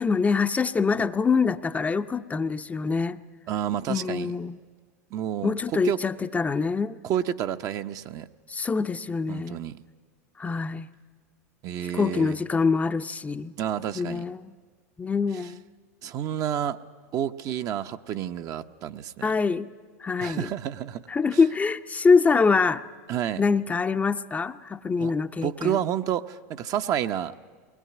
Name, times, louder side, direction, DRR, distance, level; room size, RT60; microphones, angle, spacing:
voice 1, 0.0-3.2 3.9-4.6 5.4-7.0 8.5-9.6 10.4-10.9 11.9-13.5 13.9-14.5 15.0-15.6 19.2-19.7 20.0-20.5 21.1-22.8 23.4-25.8, left 4 dB, 15° left, 9 dB, 0.6 m, -24 dB
voice 2, 3.5-4.3 5.1-5.5 5.8-6.0 7.0-8.3 9.3-9.8 11.6-12.3 13.6-14.3 15.4-15.5 16.0-16.8 17.1-19.3 20.2-21.1 23.1-23.4 25.0-25.1 25.4-27.3, right 10 dB, 45° right, 9 dB, 0.8 m, -29 dB
21.0 x 19.0 x 9.4 m, 1.5 s
hypercardioid pair, 100°, 9 cm